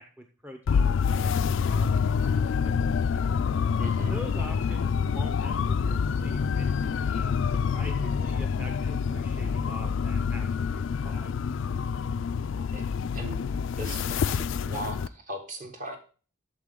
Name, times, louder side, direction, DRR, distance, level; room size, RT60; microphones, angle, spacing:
voice 1, 0.0-3.3 4.1-11.3, equal, 10° right, 3 dB, 0.6 m, -45 dB
sound 1, 0.7-15.1, left 6 dB, 65° left, 0.3 m, -27 dB
voice 2, 3.8-4.2 12.7-12.9 13.1-13.4 13.8-16.0, right 1 dB, 40° right, 4 dB, 1.6 m, -38 dB
8.4 x 6.8 x 3.7 m, 0.38 s
head